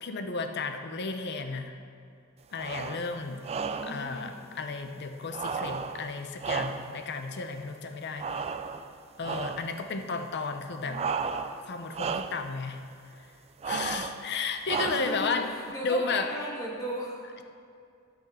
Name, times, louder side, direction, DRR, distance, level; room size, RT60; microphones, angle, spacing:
voice 1, 0.0-1.8 2.5-3.4 3.8-8.4 9.2-11.0 11.6-12.8 13.6-15.5 15.8-16.3, left 4 dB, 55° left, 7 dB, 0.7 m, -33 dB
sound 1, 2.5-3.1 3.4-4.1 5.3-7.1 8.2-8.9 9.2-9.7 10.9-11.7 11.9-12.5 13.6-14.2 14.7-15.3, right 5 dB, 30° right, 0.3 m, -33 dB
voice 2, 3.5-4.4 10.8-11.3 14.7-17.3, equal, 15° left, -4 dB, 1.7 m, -37 dB
13.0 x 6.3 x 4.3 m, 2.4 s
head